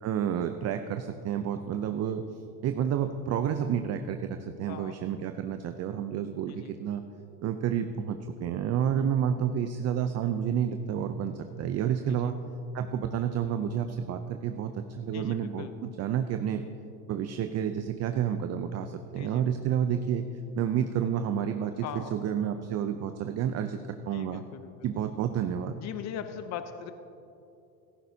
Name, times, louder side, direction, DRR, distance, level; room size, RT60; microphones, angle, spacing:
voice 1, 0.0-2.2 2.6-7.0 7.4-12.4 12.7-16.6 17.1-20.2 20.6-24.4 24.8-25.8, right 9 dB, 35° right, 8 dB, 0.6 m, -30 dB
voice 2, 15.1-15.7 16.5-16.7 19.2-19.4 21.8-22.1 24.1-24.7 25.8-26.9, left 9 dB, 35° left, 9 dB, 0.7 m, -40 dB
15.5 x 13.5 x 2.8 m, 2.7 s
supercardioid pair, 100°, 46 cm